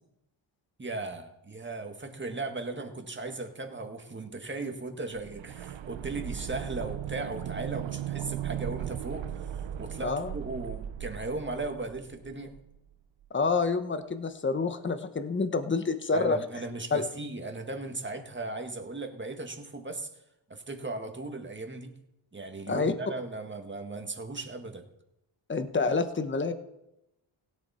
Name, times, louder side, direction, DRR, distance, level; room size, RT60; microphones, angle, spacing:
voice 1, 0.8-12.6 16.1-20.1 20.5-21.9 22.3-24.9, right 2 dB, 25° right, 5 dB, 1.8 m, -37 dB
sound 1, 5.1-12.9 13.2-13.3, right 11 dB, 70° right, 0.8 m, -37 dB
voice 2, 10.0-10.3 13.3-16.4 16.9-17.0 22.7-22.9 25.5-26.5, left 4 dB, 25° left, 9 dB, 1.1 m, -28 dB
17.0 x 9.9 x 4.3 m, 0.89 s
cardioid pair, 80°, 47 cm